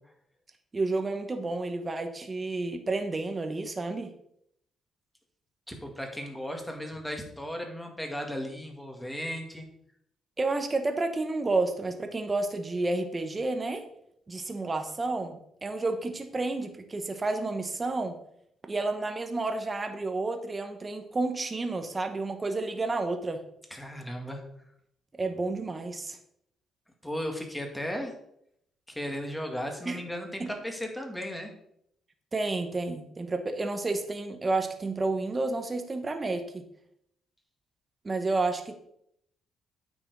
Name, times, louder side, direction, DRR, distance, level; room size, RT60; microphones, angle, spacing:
voice 1, 0.7-4.1 10.4-13.8 14.3-18.2 18.6-23.4 25.2-26.2 29.8-30.0 30.4-30.5 32.3-36.6 38.0-38.7, right 3 dB, 25° right, 7 dB, 1.2 m, -30 dB
voice 2, 5.7-9.7 23.7-24.4 27.0-28.1 28.9-31.5, equal, 5° left, 2 dB, 2.1 m, -36 dB
9.2 x 6.1 x 4.7 m, 0.72 s
cardioid pair, 90°, 0 cm